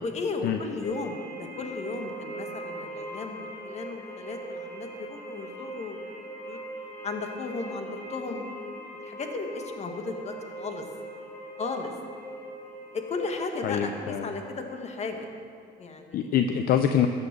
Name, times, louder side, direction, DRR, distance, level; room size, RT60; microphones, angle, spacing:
voice 1, 0.0-6.0 6.4-6.6 7.0-8.5 9.0-10.8 11.6-11.9 12.9-15.3 15.8-16.3, left 3 dB, 40° left, 4 dB, 1.5 m, -35 dB
sound 1, 0.8-15.3, right 1 dB, 15° left, 2.2 m, -41 dB
voice 2, 13.6-14.3 16.1-17.1, left 9 dB, 65° left, 7 dB, 0.6 m, -25 dB
13.0 x 7.0 x 7.4 m, 2.3 s
cardioid pair, 110°, 17 cm